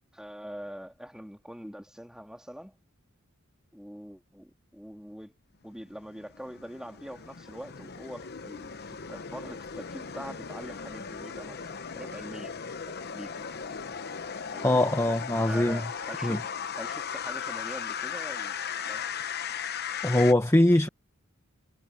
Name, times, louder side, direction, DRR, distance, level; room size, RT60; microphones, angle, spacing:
voice 1, 0.1-2.7 3.7-5.4 5.6-12.6 13.0-13.5 14.5-14.8 15.4-16.4 16.7-18.6 18.8-19.1, equal, 5° right, 3.3 m, -43 dB
sound 1, 5.8-20.3, left 7 dB, 50° left, 1.0 m, -37 dB
voice 2, 14.6-15.8 16.2-16.4 20.0-20.9, left 1 dB, 15° left, 1.0 m, -22 dB
head